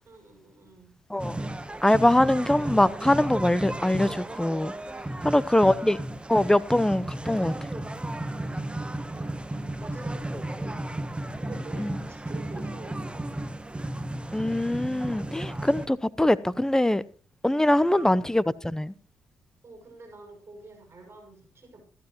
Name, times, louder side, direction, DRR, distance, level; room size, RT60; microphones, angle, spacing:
voice 1, 0.0-0.9 5.1-6.1 8.3-8.8 9.1-11.0 11.4-13.4 17.8-18.6 19.6-21.8, right 2 dB, 35° right, 6.3 m, -49 dB
sound 1, 1.2-15.9, right 1 dB, 15° right, 1.1 m, -34 dB
voice 2, 1.8-4.7 5.2-6.0 6.3-7.5 11.8-11.9 14.3-17.0 17.4-18.9, left 1 dB, 10° left, 0.8 m, -23 dB
14.5 x 12.5 x 3.0 m
supercardioid pair, 60°, 7 cm